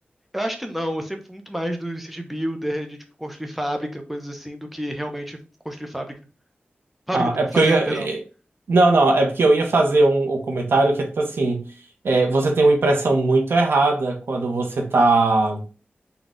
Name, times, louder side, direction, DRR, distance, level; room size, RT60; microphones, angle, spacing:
voice 1, 0.3-5.4 5.6-6.2 7.1-8.1, equal, 5° right, 0.7 m, -29 dB
voice 2, 7.1-8.2 8.7-11.6 12.0-15.6, right 2 dB, 90° right, 0.8 m, -19 dB
4.1 x 2.3 x 3.6 m
wide cardioid pair, 75°, 4 cm